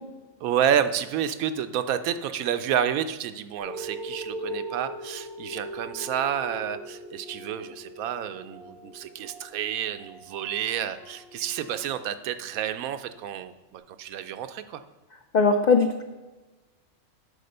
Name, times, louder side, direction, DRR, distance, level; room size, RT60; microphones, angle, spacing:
voice 1, 0.4-14.8, right 9 dB, 80° right, 10 dB, 1.0 m, -29 dB
sound 1, 3.6-12.5 13.1-13.2, right 1 dB, 60° right, 2.5 m, -40 dB
voice 2, 15.3-16.0, left 4 dB, 75° left, 4 dB, 0.4 m, -20 dB
10.0 x 4.3 x 6.5 m, 1.2 s
omnidirectional pair, 1.5 m